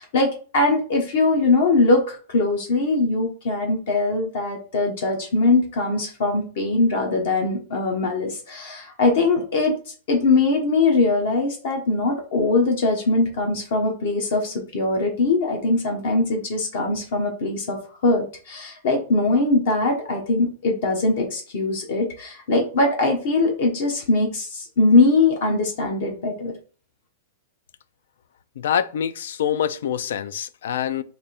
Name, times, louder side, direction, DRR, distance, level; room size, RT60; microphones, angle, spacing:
voice 1, 0.0-9.7 10.1-17.8 18.0-26.5, left 3 dB, 50° left, 0.8 m, -21 dB
voice 2, 28.6-31.0, left 9 dB, 70° left, 0.3 m, -25 dB
3.4 x 2.5 x 4.1 m
supercardioid pair, 170°, 0 cm